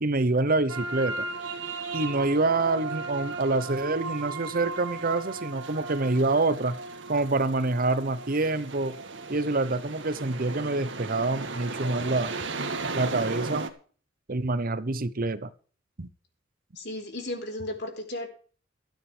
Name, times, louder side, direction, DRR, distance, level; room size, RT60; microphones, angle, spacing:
voice 1, 0.0-1.2 1.9-6.8 7.1-9.0 9.3-12.3 12.9-13.7 14.3-15.5 16.0-16.1, right 2 dB, 50° right, 0.9 m, -26 dB
sound 1, 0.7-13.7, right 3 dB, 70° right, 1.9 m, -36 dB
voice 2, 16.8-18.3, left 1 dB, 60° left, 4.3 m, -34 dB
16.5 x 13.0 x 3.4 m
head